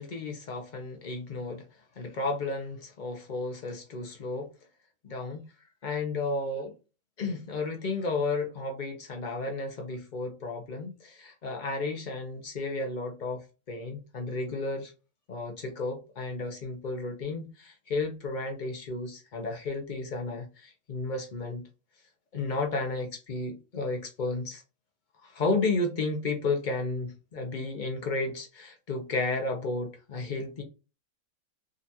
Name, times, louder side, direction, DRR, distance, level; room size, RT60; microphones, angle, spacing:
voice 1, 0.0-1.6 2.0-4.5 5.0-5.4 5.8-6.7 7.2-14.9 15.3-21.7 22.3-24.6 25.2-30.6, left 3 dB, 45° left, 0.7 m, -33 dB
3.8 x 2.4 x 2.7 m
omnidirectional pair, 1.4 m